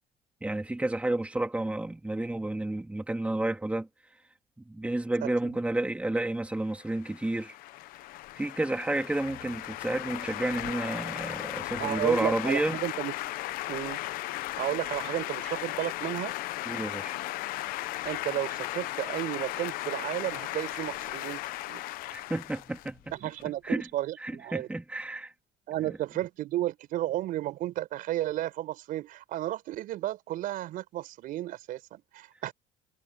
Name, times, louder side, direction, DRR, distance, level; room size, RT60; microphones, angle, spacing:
voice 1, 0.4-3.9 4.7-7.5 8.3-12.8 16.7-17.2 22.1-23.0 23.6-23.9 24.2-25.3 25.9-26.0, right 2 dB, 10° right, 2.6 m, -31 dB
voice 2, 5.2-5.6 11.8-13.1 13.7-14.0 14.6-16.3 18.0-21.4 21.7-21.8 23.1-24.7 25.7-32.5, right 14 dB, 65° right, 5.1 m, -33 dB
sound 1, 6.7-23.4, left 17 dB, 75° left, 0.9 m, -36 dB
cardioid pair, 105°, 15 cm